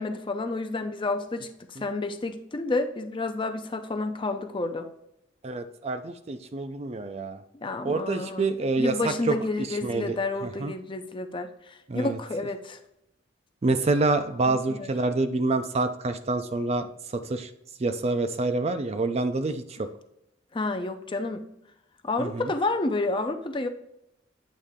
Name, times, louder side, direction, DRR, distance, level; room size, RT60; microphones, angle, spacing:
voice 1, 0.0-4.9 7.6-8.5 8.8-12.8 14.5-14.9 20.5-21.4 22.0-23.7, left 2 dB, 25° left, 7 dB, 0.5 m, -30 dB
voice 2, 5.4-7.4 7.8-10.7 11.9-12.2 13.6-17.5 17.8-19.9 22.2-22.5, right 3 dB, 35° right, 9 dB, 0.4 m, -27 dB
8.2 x 3.2 x 3.6 m, 0.82 s
head